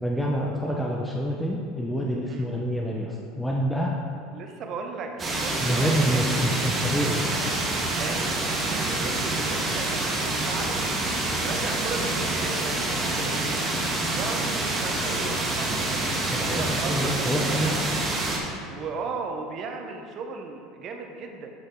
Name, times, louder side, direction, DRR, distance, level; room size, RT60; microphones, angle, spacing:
voice 1, 0.0-4.0 5.6-7.2 13.2-13.3 16.3-17.7, equal, 5° left, -2 dB, 0.8 m, -27 dB
voice 2, 4.3-7.5 8.0-10.9 11.3-13.9 14.2-16.1 16.4-17.8 18.7-21.5, right 4 dB, 50° right, 3 dB, 1.1 m, -36 dB
sound 1, 5.2-18.4, right 2 dB, 25° right, 1.7 m, -27 dB
10.5 x 5.2 x 3.8 m, 2.2 s
hypercardioid pair, 80°, 0 cm